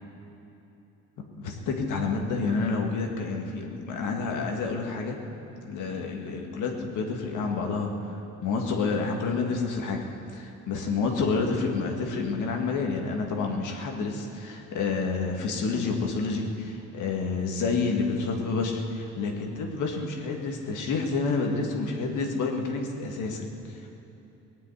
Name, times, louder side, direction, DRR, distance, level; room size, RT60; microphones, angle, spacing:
voice 1, 1.4-5.2 5.6-7.9 8.4-10.0 10.3-23.5, left 4 dB, 80° left, 1 dB, 1.9 m, -29 dB
19.0 x 7.5 x 9.4 m, 2.9 s
cardioid pair, 90°, 30 cm